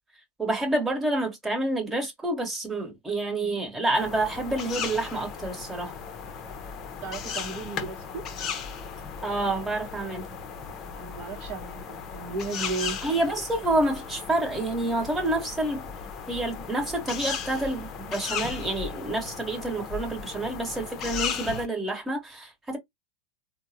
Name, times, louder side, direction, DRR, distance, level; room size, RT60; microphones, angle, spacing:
voice 1, 0.4-5.9 9.2-10.3 13.0-15.9 16.3-22.8, right 2 dB, 10° right, 1.2 m, -28 dB
sound 1, 3.9-21.7, left 6 dB, 35° left, 0.6 m, -36 dB
voice 2, 7.0-8.2 10.9-13.0, right 4 dB, 45° right, 0.8 m, -35 dB
3.5 x 2.0 x 2.7 m
hypercardioid pair, 115°, 0 cm